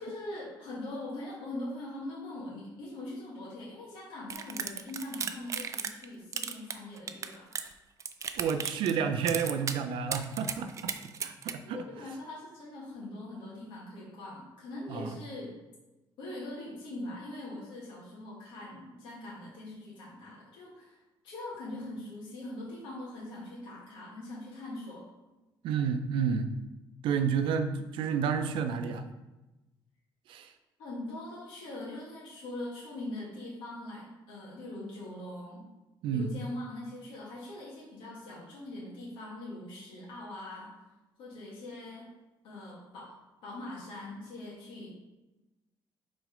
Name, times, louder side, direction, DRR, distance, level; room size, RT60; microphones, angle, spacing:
voice 1, 0.0-7.5 11.6-15.5 16.2-25.1 30.8-35.7 36.1-40.7 41.2-42.1 42.4-43.1 43.4-44.9, left 1 dB, 85° left, -6 dB, 1.9 m, -42 dB
sound 1, 4.3-6.0 6.3-7.7 8.0-9.0 9.3-9.8 10.1-11.5, right 6 dB, 40° right, 0.4 m, -35 dB
voice 2, 8.4-10.9 11.2-11.8 14.9-15.1 25.6-26.5 27.0-29.1 30.3-30.5 36.0-36.3, right 6 dB, 80° right, 8 dB, 0.6 m, -30 dB
4.8 x 4.1 x 5.1 m, 1.0 s
cardioid pair, 120°, 8 cm